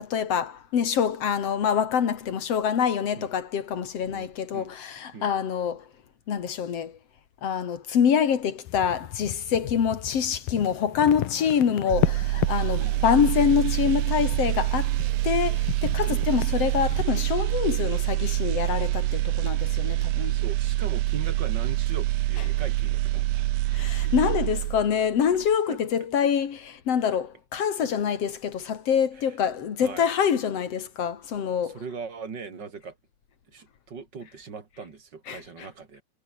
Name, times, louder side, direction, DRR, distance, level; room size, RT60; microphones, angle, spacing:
voice 1, 0.0-5.8 6.3-7.0 7.4-15.0 15.2-20.4 23.7-31.8 35.3-35.7, left 8 dB, 45° left, 2.7 m, -25 dB
voice 2, 4.1-4.7 5.1-5.3 9.5-9.7 11.5-11.6 12.8-13.0 16.0-16.3 20.3-23.5 25.7-25.8 29.2-29.3 29.8-30.1 31.5-32.9 33.5-36.0, right 5 dB, 30° right, 2.9 m, -40 dB
sound 1, 8.7-17.0, left 16 dB, 75° left, 2.6 m, -34 dB
sound 2, 11.9-25.0 25.4-25.6, right 17 dB, 75° right, 2.4 m, -26 dB
omnidirectional pair, 4.6 m